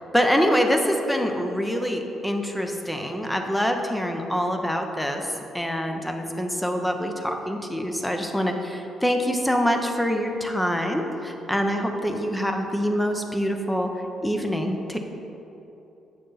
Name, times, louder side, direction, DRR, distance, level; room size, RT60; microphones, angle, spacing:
voice 1, 0.0-13.9 14.2-15.0, equal, 5° left, 4 dB, 0.8 m, -25 dB
8.1 x 6.3 x 4.1 m, 3.0 s
cardioid pair, 90°, 0 cm